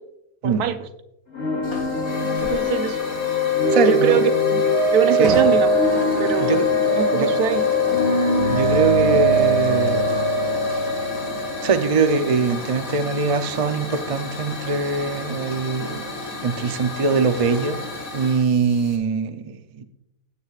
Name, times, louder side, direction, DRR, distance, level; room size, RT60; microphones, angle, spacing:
voice 1, 0.4-0.9 2.2-3.0 3.8-4.6 4.9-5.7 6.2-6.6 6.9-7.6 9.0-9.1, right 8 dB, 85° right, 10 dB, 1.3 m, -23 dB
sound 1, 1.3-13.0, equal, 70° left, 3.9 m, -21 dB
Hiss / Fire, 1.6-19.0, left 2 dB, 40° left, 3.4 m, -33 dB
voice 2, 3.7-4.3 5.2-5.4 6.4-6.7 7.1-7.4 8.5-10.0 11.6-16.0 16.4-17.8 18.1-19.8, right 4 dB, 50° right, 8 dB, 0.4 m, -22 dB
15.0 x 9.8 x 2.4 m, 0.81 s
omnidirectional pair, 1.6 m